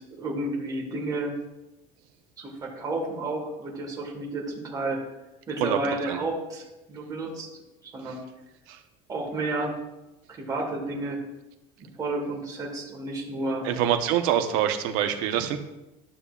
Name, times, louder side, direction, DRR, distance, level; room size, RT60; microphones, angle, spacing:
voice 1, 0.0-1.3 2.4-5.0 5.5-6.6 6.9-7.5 7.8-8.2 9.1-9.7 10.4-11.2 11.8-13.7, right 2 dB, 20° right, -2 dB, 1.5 m, -31 dB
voice 2, 13.6-15.6, right 10 dB, 80° right, 6 dB, 0.9 m, -25 dB
12.0 x 6.9 x 2.4 m, 0.98 s
cardioid pair, 170°, 19 cm